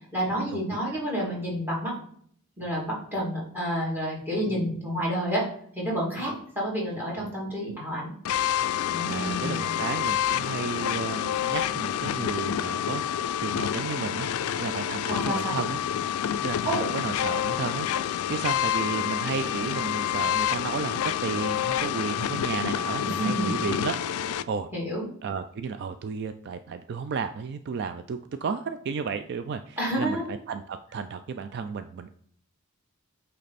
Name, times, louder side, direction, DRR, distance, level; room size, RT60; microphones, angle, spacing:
voice 1, 0.1-1.9 2.6-5.5 5.7-8.1 8.9-9.7 15.1-15.6 16.6-16.9 23.0-23.5 24.7-25.0 29.8-30.2, equal, 10° right, -3 dB, 2.5 m, -29 dB
voice 2, 4.5-4.8 6.2-6.4 7.7-7.8 9.1-13.0 13.4-14.3 14.6-15.8 16.4-24.7 25.2-32.1, right 5 dB, 50° right, 10 dB, 0.3 m, -33 dB
sound 1, 8.2-24.4, left 10 dB, 80° left, 0.3 m, -28 dB
8.3 x 3.3 x 4.1 m, 0.63 s
head